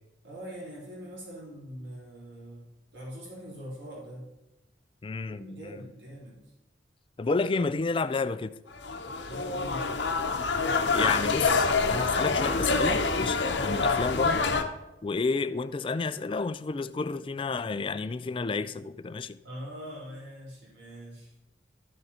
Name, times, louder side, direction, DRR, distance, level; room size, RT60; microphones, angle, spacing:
voice 1, 0.2-4.3 5.3-6.5 9.2-9.9 19.4-21.3, equal, 75° right, 3.5 m, -43 dB
voice 2, 5.0-5.7 7.2-8.5 10.9-14.4 15.0-19.4, left 4 dB, 30° left, 0.3 m, -31 dB
sound 1, 8.7-14.6, left 4 dB, 70° left, 0.8 m, -26 dB
13.0 x 6.6 x 4.2 m
head